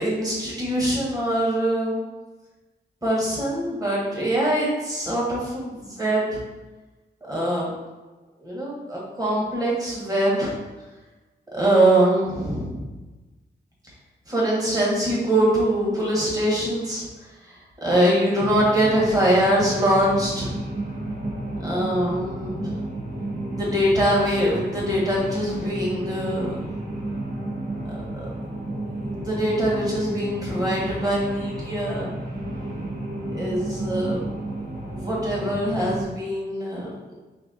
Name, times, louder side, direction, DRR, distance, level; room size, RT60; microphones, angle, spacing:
voice 1, 0.0-2.0 3.0-6.4 7.3-7.7 8.4-10.5 11.5-12.8 14.3-17.1 17.4-17.6 17.8-20.5 21.6-22.7 23.5-26.7 27.9-28.3 29.2-32.1 33.3-34.3 34.9-37.1, right 1 dB, 20° right, -5 dB, 1.3 m, -23 dB
sound 1, 18.4-36.0, right 1 dB, 50° right, 0.9 m, -31 dB
4.1 x 3.5 x 2.5 m, 1.2 s
wide cardioid pair, 120°, 19 cm